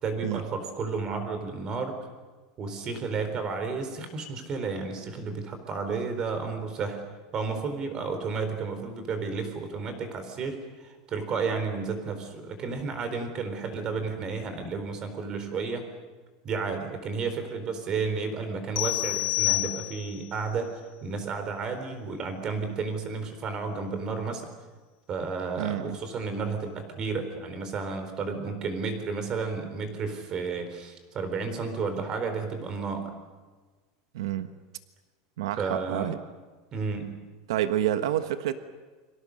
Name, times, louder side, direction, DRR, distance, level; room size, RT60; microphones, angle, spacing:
voice 1, 0.0-2.0 2.6-7.0 7.3-15.8 16.4-20.7 21.0-24.4 25.1-33.1 35.6-36.2 36.7-37.2, right 4 dB, 30° right, 8 dB, 4.1 m, -32 dB
sound 1, 18.8-20.3, left 28 dB, 60° left, 1.9 m, -28 dB
voice 2, 25.6-26.0 34.1-34.5 35.4-36.2 37.5-38.5, right 12 dB, 90° right, 9 dB, 1.4 m, -28 dB
29.5 x 24.5 x 6.6 m, 1.4 s
supercardioid pair, 160°, 2 cm